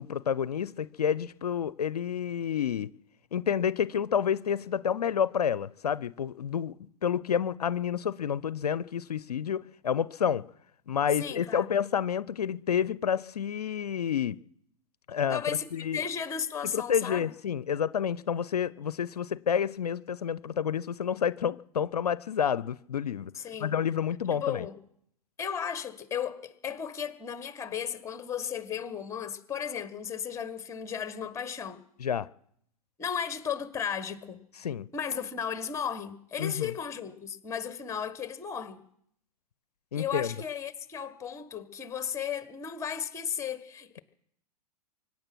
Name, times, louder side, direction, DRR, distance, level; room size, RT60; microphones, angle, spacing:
voice 1, 0.0-2.9 3.3-6.7 7.0-10.4 10.9-14.4 15.1-15.4 15.7-16.0 16.7-23.3 23.6-24.7 32.0-32.3 34.6-34.9 36.4-36.7 39.9-40.3, left 8 dB, 80° left, 0.5 m, -29 dB
voice 2, 11.2-11.7 15.3-17.3 23.3-23.7 24.3-24.8 25.4-31.8 33.0-34.4 34.9-38.8 40.0-44.0, left 8 dB, 15° left, 1.5 m, -35 dB
24.5 x 9.4 x 6.1 m
figure-of-eight pair, 105°, 20 cm